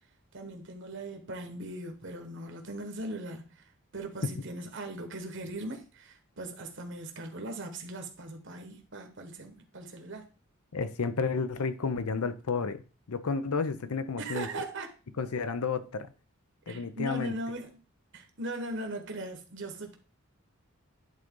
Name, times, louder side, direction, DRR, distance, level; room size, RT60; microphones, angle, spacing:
voice 1, 0.3-3.6 3.9-10.3 14.2-14.9 15.4-15.5 16.7-17.7 18.1-20.0, right 1 dB, 55° right, 1.3 m, -39 dB
voice 2, 10.7-12.8 13.1-14.5 15.2-16.1 16.7-17.3, left 4 dB, 80° left, 0.7 m, -31 dB
10.5 x 3.9 x 3.7 m
head